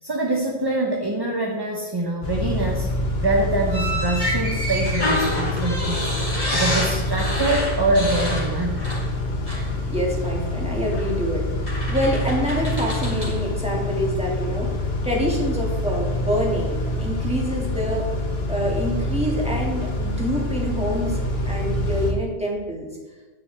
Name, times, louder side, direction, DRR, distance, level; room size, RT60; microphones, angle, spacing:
voice 1, 0.0-2.9 3.2-6.1 6.5-8.8, right 2 dB, 25° right, 0 dB, 1.0 m, -24 dB
Car / Idling / Accelerating revving vroom, 2.2-22.1, left 1 dB, 70° left, 1.5 m, -26 dB
sound 1, 3.7-9.2 9.5-9.7 10.9-11.1 11.7-13.4, left 1 dB, 40° left, 3.0 m, -28 dB
voice 2, 9.9-11.5 11.9-14.7 15.0-18.1 18.5-22.9, equal, 5° right, -3 dB, 2.5 m, -26 dB
10.0 x 9.6 x 3.5 m, 1.3 s
omnidirectional pair, 1.1 m